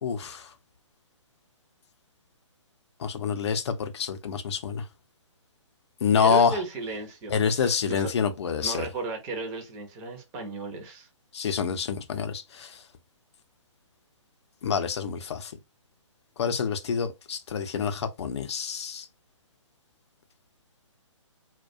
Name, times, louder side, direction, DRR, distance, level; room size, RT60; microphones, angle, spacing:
voice 1, 0.0-0.4 3.0-4.8 6.0-6.6 7.3-8.8 11.3-12.7 14.6-15.5 16.4-19.0, left 6 dB, 60° left, 0.5 m, -27 dB
voice 2, 6.2-8.1 8.6-11.1, right 2 dB, 20° right, 0.5 m, -35 dB
2.3 x 2.1 x 2.5 m
hypercardioid pair, 140°, 16 cm